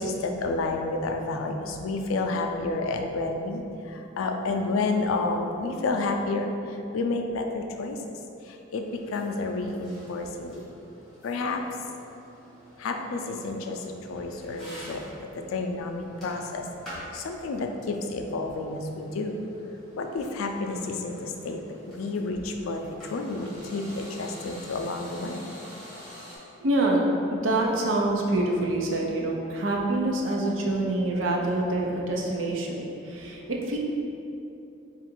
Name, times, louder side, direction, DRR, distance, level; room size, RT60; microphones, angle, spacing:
voice 1, 0.0-8.1 8.4-10.6 11.2-11.6 12.8-16.7 17.1-19.4 20.0-25.4 33.2-33.5, left 3 dB, 85° left, 4 dB, 0.4 m, -30 dB
sound 1, 8.8-26.4, equal, ahead, 1.3 m, -48 dB
voice 2, 26.6-33.8, right 1 dB, 75° right, -2 dB, 0.6 m, -26 dB
3.8 x 2.4 x 4.4 m, 2.7 s
head